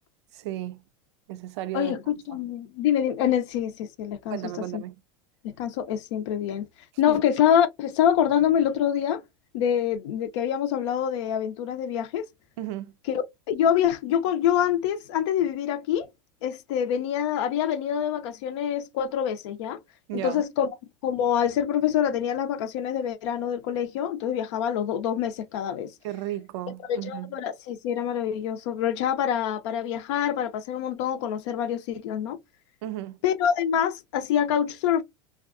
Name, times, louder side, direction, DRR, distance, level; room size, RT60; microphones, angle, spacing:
voice 1, 0.3-0.8 1.3-2.0 4.3-4.9 7.1-7.2 12.6-12.9 20.1-20.4 26.0-27.3 32.8-33.2, right 14 dB, 70° right, 0.4 m, -34 dB
voice 2, 1.7-4.8 5.4-6.7 7.0-9.2 9.5-12.3 13.0-16.1 16.4-19.8 20.1-20.8 21.0-25.9 26.7-32.4 33.2-35.0, left 9 dB, 70° left, 0.5 m, -26 dB
2.5 x 2.3 x 2.4 m
supercardioid pair, 110°, 15 cm